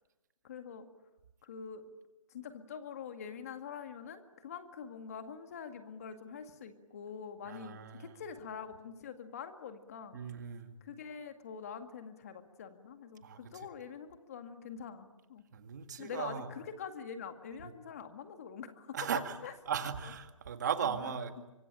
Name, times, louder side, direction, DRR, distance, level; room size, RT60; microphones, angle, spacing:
voice 1, 0.4-0.9 1.4-1.8 2.3-10.2 10.8-15.4 16.0-19.0 19.4-19.5 20.0-20.1 20.8-21.4, left 7 dB, 30° left, 8 dB, 2.0 m, -45 dB
voice 2, 7.5-8.2 10.1-10.8 13.2-13.4 15.5-16.5 18.9-19.4 19.7-21.3, right 7 dB, 35° right, 8 dB, 2.0 m, -37 dB
25.5 x 25.0 x 9.0 m, 1.0 s
hypercardioid pair, 170°, 17 cm